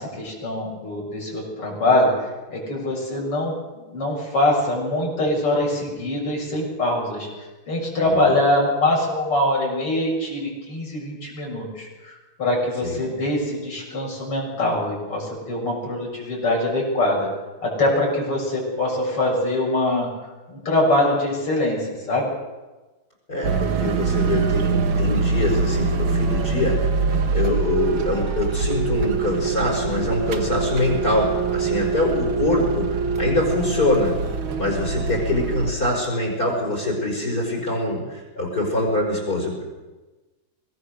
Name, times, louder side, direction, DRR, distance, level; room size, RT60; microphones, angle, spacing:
voice 1, 0.0-7.3 7.7-17.3 17.6-20.1 20.5-22.3, left 1 dB, 85° left, -2 dB, 7.7 m, -23 dB
voice 2, 8.1-8.4 12.8-13.0 23.3-26.8 27.3-34.1 34.5-39.6, left 2 dB, 40° left, -2 dB, 5.9 m, -24 dB
sound 1, 23.4-35.7, right 4 dB, 65° right, 2.2 m, -24 dB
24.0 x 19.5 x 6.7 m, 1.2 s
omnidirectional pair, 2.4 m